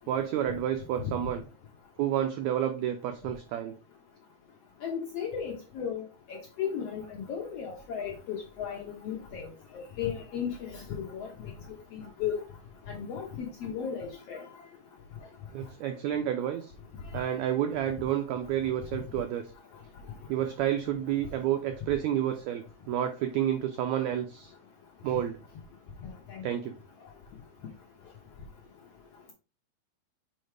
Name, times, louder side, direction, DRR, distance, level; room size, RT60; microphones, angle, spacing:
voice 1, 0.1-1.5 2.0-3.8 15.5-16.7 17.1-19.4 20.3-24.5 25.0-25.4 26.4-26.7, right 10 dB, 85° right, 7 dB, 1.6 m, -30 dB
voice 2, 4.8-6.0 6.3-9.4 10.0-11.5 11.9-12.4 12.9-14.5 26.0-26.4, left 7 dB, 75° left, 0 dB, 1.4 m, -35 dB
6.4 x 4.6 x 3.3 m, 0.33 s
omnidirectional pair, 3.8 m